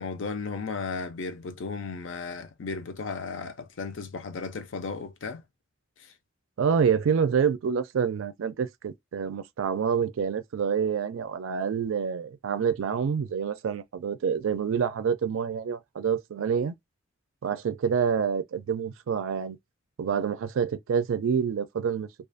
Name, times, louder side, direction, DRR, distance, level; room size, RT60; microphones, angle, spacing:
voice 1, 0.0-5.4 6.0-6.1, left 4 dB, 70° left, 0.5 m, -35 dB
voice 2, 6.6-16.8 17.4-19.6 20.0-22.1, right 6 dB, 85° right, 0.4 m, -27 dB
2.4 x 2.3 x 2.5 m
head